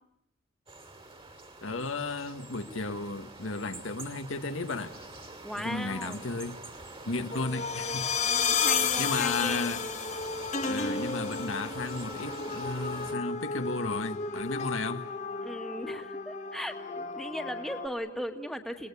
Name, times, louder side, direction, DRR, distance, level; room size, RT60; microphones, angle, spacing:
sound 1, 0.7-13.1, right 2 dB, 30° right, 2.7 m, -46 dB
voice 1, 1.6-5.0 5.5-6.6 7.0-8.1 8.4-8.7 9.0-9.9 10.7-15.1, left 3 dB, 85° left, 1.5 m, -34 dB
voice 2, 5.4-6.3 8.2-9.8 15.4-18.9, equal, ahead, 1.8 m, -37 dB
Scary sounds, 7.3-17.9, left 5 dB, 40° left, 1.7 m, -32 dB
29.0 x 20.0 x 8.4 m
head